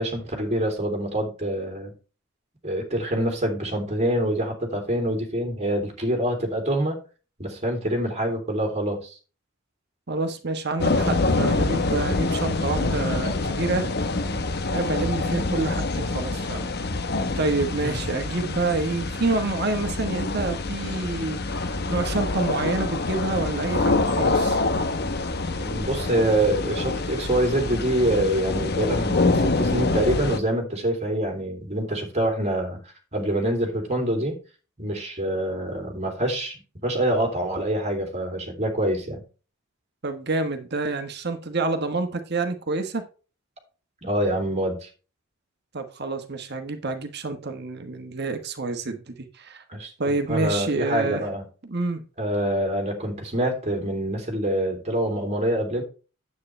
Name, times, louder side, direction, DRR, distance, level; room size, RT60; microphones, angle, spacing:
voice 1, 0.0-1.9 2.6-7.0 7.4-9.2 17.8-18.0 25.6-32.8 33.1-34.4 34.8-39.2 44.0-44.9 49.7-51.5 52.2-55.8, right 1 dB, 35° right, 2.9 m, -26 dB
voice 2, 10.1-13.9 14.7-16.7 17.4-24.6 40.0-43.0 45.7-49.6 50.0-51.3 51.6-52.0, right 3 dB, 55° right, 1.3 m, -28 dB
sound 1, 10.8-30.4, left 3 dB, 55° left, 1.0 m, -26 dB
9.7 x 8.4 x 3.3 m
head